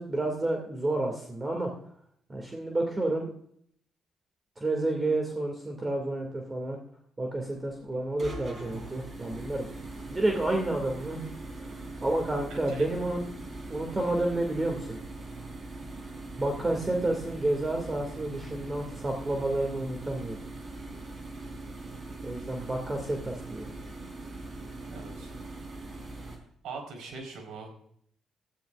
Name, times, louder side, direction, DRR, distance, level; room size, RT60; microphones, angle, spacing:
voice 1, 0.0-1.7 2.3-3.3 4.6-6.8 7.2-9.7 10.1-11.3 11.6-11.7 12.0-13.2 13.7-15.0 16.4-20.4 22.2-23.7, right 2 dB, 25° right, 2 dB, 2.4 m, -30 dB
sound 1, 7.4-26.4, right 2 dB, 40° right, 4.3 m, -41 dB
voice 2, 12.5-12.9 24.8-25.4 26.6-27.7, right 4 dB, 80° right, 4 dB, 4.4 m, -42 dB
17.0 x 13.5 x 2.5 m, 0.65 s
cardioid pair, 90°, 0 cm